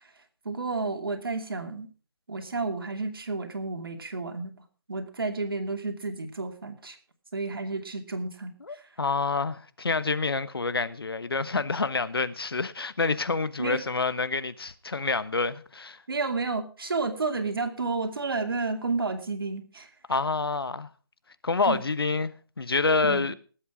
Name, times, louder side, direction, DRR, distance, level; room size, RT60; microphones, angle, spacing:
voice 1, 0.4-1.9 2.3-4.5 4.9-7.0 7.3-8.8 13.6-13.8 16.1-19.9 21.7-21.8 23.0-23.3, right 3 dB, 70° right, 2.7 m, -31 dB
voice 2, 8.6-16.0 20.1-20.9 21.4-23.3, left 4 dB, 80° left, 1.2 m, -27 dB
18.5 x 8.0 x 5.0 m
figure-of-eight pair, 155°, 12 cm